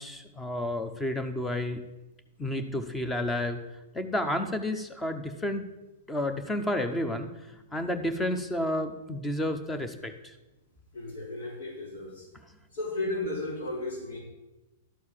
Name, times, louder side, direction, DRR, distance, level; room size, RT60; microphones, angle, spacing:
voice 1, 0.0-1.8 2.4-3.6 3.9-5.7 6.1-10.3, left 1 dB, 10° left, 9 dB, 1.0 m, -31 dB
voice 2, 10.9-12.3 12.7-14.2, left 2 dB, 75° left, -3 dB, 4.3 m, -34 dB
12.5 x 4.6 x 7.4 m, 1.0 s
hypercardioid pair, 140°, 0 cm